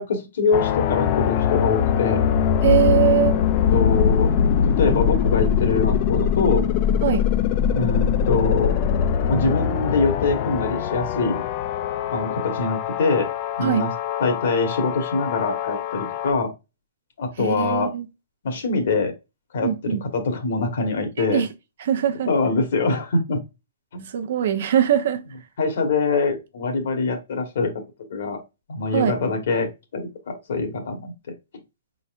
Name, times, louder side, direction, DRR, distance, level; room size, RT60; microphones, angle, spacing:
voice 1, 0.0-2.2 3.2-3.4 3.7-4.3 4.8-6.6 7.7-8.8 9.3-11.4 12.1-13.3 13.6-13.9 14.2-16.5 17.2-17.9 18.4-19.1 19.5-21.4 22.3-23.4 23.9-24.1 25.6-27.7 28.1-28.4 28.7-31.1, left 3 dB, 65° left, 1.5 m, -24 dB
sound 1, 0.5-16.3, left 8 dB, 35° left, 0.4 m, -22 dB
voice 2, 2.6-3.4 7.0-7.3 13.6-13.8 17.4-18.1 19.6-20.0 21.2-21.5 21.8-22.3 24.1-25.2 28.9-29.2, right 10 dB, 60° right, 0.7 m, -21 dB
4.4 x 4.0 x 2.5 m
hypercardioid pair, 150°, 0 cm